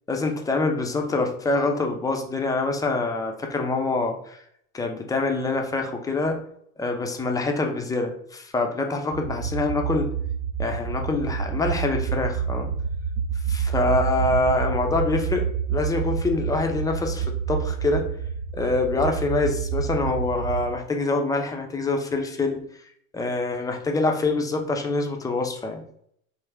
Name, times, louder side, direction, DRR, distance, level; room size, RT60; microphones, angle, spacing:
voice 1, 0.1-4.4 4.7-6.4 6.8-10.1 10.6-12.7 13.5-18.1 18.5-22.7 23.1-25.8, left 3 dB, 10° left, 3 dB, 0.4 m, -25 dB
sound 1, 9.1-20.7, right 7 dB, 75° right, 0.5 m, -28 dB
3.6 x 2.1 x 3.3 m, 0.68 s
hypercardioid pair, 85°, 43 cm